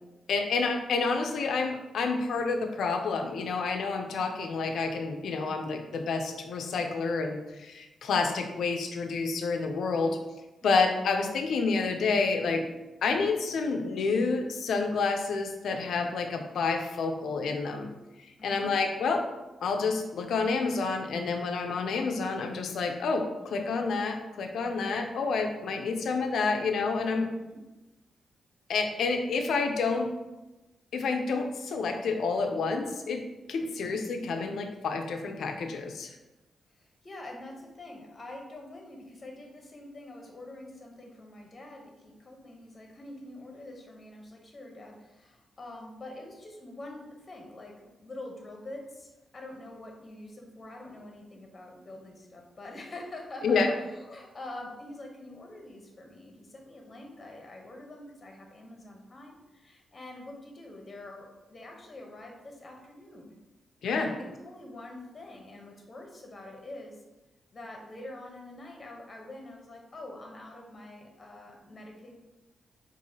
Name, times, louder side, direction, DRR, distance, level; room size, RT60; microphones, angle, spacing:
voice 1, 0.3-10.2 10.6-12.7 13.0-17.9 18.2-19.3 19.6-27.3 28.7-30.1 30.9-33.2 33.5-36.1 53.4-53.7 63.8-64.1, left 4 dB, 80° left, 5 dB, 0.4 m, -29 dB
voice 2, 18.4-18.8 27.1-27.6 33.8-33.9 36.7-47.8 48.0-63.3 63.9-67.0 67.5-72.2, left 1 dB, 35° left, 1 dB, 0.8 m, -45 dB
4.6 x 2.5 x 2.8 m, 1.1 s
cardioid pair, 90°, 0 cm